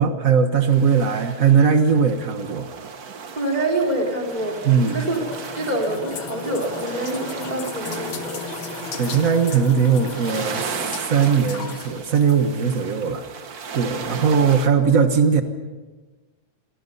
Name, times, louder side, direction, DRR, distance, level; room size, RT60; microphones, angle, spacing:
voice 1, 0.0-2.7 4.6-5.0 8.9-13.2 13.7-15.4, right 6 dB, 90° right, 7 dB, 0.7 m, -19 dB
sound 1, 0.7-14.7, right 6 dB, 60° right, 0.9 m, -36 dB
sound 2, 3.3-12.9, left 4 dB, 45° left, 2.1 m, -36 dB
voice 2, 3.4-4.6 4.9-8.4, right 1 dB, 10° right, 2 dB, 4.5 m, -26 dB
28.5 x 24.5 x 5.6 m, 1.3 s
omnidirectional pair, 3.7 m